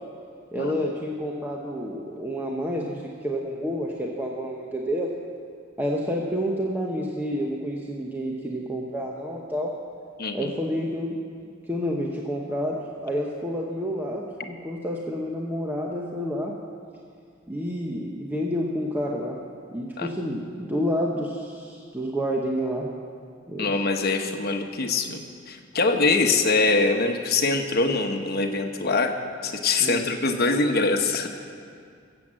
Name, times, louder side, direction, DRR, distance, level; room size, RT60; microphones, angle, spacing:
voice 1, 0.5-5.1 5.8-9.7 10.3-11.2 11.7-16.5 17.5-19.4 19.7-22.9 23.5-23.7 26.0-26.3 29.8-30.0, equal, 10° right, -2 dB, 0.9 m, -29 dB
voice 2, 10.2-10.5 20.0-20.1 23.6-29.1 29.4-31.3, left 3 dB, 55° left, 4 dB, 1.1 m, -23 dB
17.5 x 7.9 x 7.5 m, 2.2 s
head